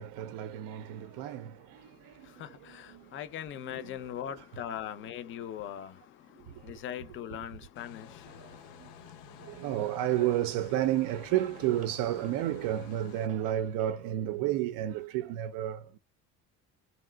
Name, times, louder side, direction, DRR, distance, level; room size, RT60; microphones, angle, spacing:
voice 1, 0.0-3.2 3.7-3.9 6.5-6.7 8.8-8.9 9.4-16.0, right 12 dB, 70° right, 0.5 m, -32 dB
voice 2, 2.2-8.4, left 10 dB, 35° left, 0.4 m, -41 dB
sound 1, 7.7-13.3, left 10 dB, 85° left, 0.6 m, -51 dB
sound 2, 8.3-15.3, right 4 dB, 25° right, 0.6 m, -54 dB
3.1 x 2.7 x 2.2 m
cardioid pair, 165°, 34 cm